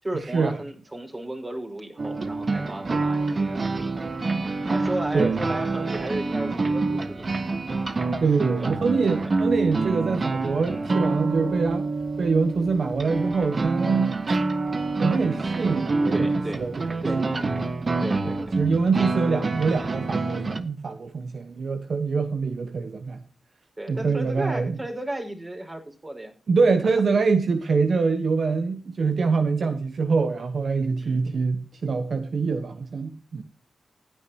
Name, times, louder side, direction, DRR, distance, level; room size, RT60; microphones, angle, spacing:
voice 1, 0.0-4.1 4.7-7.3 8.6-8.8 9.2-9.4 16.1-16.6 17.0-17.5 18.0-18.6 23.8-26.3 29.6-29.8 31.0-31.2, right 1 dB, 30° right, 3 dB, 5.3 m, -34 dB
sound 1, 2.0-20.6, right 3 dB, 50° right, 1.3 m, -27 dB
voice 2, 8.2-11.9 12.2-14.2 15.0-16.3 16.6-16.9 17.2-17.3 18.3-23.2 23.9-24.8 26.5-33.4, right 4 dB, 70° right, 8 dB, 1.1 m, -24 dB
16.0 x 10.0 x 2.9 m, 0.37 s
cardioid pair, 45°, 0 cm